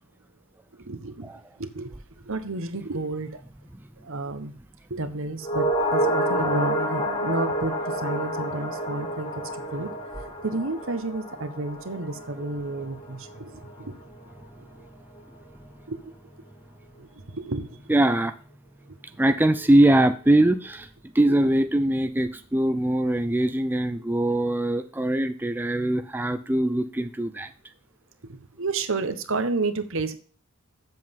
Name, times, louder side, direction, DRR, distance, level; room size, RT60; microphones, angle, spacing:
voice 1, 0.7-1.3 1.6-1.9 2.2-3.4 4.0-4.5 4.9-9.9 10.2-13.9 14.6-14.7 15.9-16.0 17.0-17.9 21.3-21.5 28.2-30.2, right 3 dB, 65° right, 10 dB, 1.2 m, -31 dB
sound 1, 5.4-13.9 14.2-14.3, right 1 dB, 25° left, 2.7 m, -29 dB
voice 2, 17.9-18.3 19.2-20.9 21.1-27.5, right 1 dB, 10° right, 9 dB, 0.5 m, -22 dB
7.9 x 7.6 x 5.4 m, 0.41 s
head